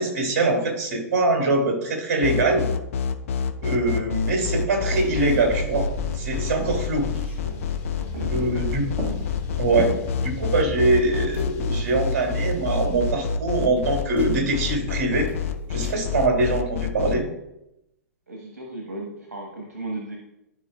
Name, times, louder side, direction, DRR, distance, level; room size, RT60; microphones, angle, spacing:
voice 1, 0.0-2.7 3.6-5.9 6.1-7.1 8.3-8.8 9.6-9.9 10.2-15.3 15.7-17.2, right 2 dB, 50° right, 2 dB, 2.7 m, -23 dB
sound 1, 2.2-17.2, left 6 dB, 60° left, 0.7 m, -27 dB
sound 2, 4.9-13.1, left 1 dB, 40° left, 2.5 m, -36 dB
sound 3, 5.0-5.7 5.9-6.0 6.3-8.5 8.9-10.1 10.7-11.6 11.9-13.3 13.6-14.8 15.2-16.0, right 2 dB, 20° right, 2.7 m, -38 dB
voice 2, 8.0-8.6 18.3-20.2, right 2 dB, 80° right, 0 dB, 1.3 m, -35 dB
12.5 x 4.9 x 2.3 m, 0.89 s
figure-of-eight pair, 110°, 8 cm